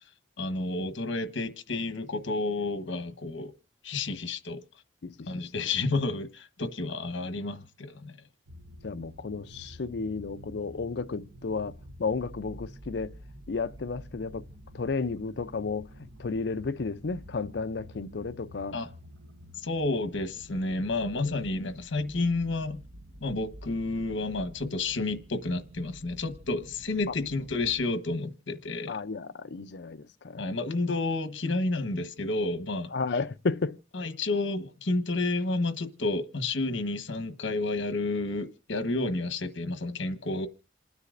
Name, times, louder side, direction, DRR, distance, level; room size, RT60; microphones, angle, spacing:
voice 1, 0.4-3.5 3.8-4.6 5.3-8.2 18.7-18.9 19.6-22.8 23.2-29.0 30.4-32.9 33.9-40.5, left 2 dB, 80° left, 1.2 m, -30 dB
voice 2, 5.0-5.4 8.8-11.7 12.0-13.1 13.5-14.5 14.7-18.8 21.2-21.4 28.9-30.4 32.9-33.8, left 4 dB, 60° left, 0.5 m, -33 dB
sound 1, 8.5-27.9, equal, 70° right, 1.0 m, -49 dB
27.5 x 9.8 x 2.5 m
head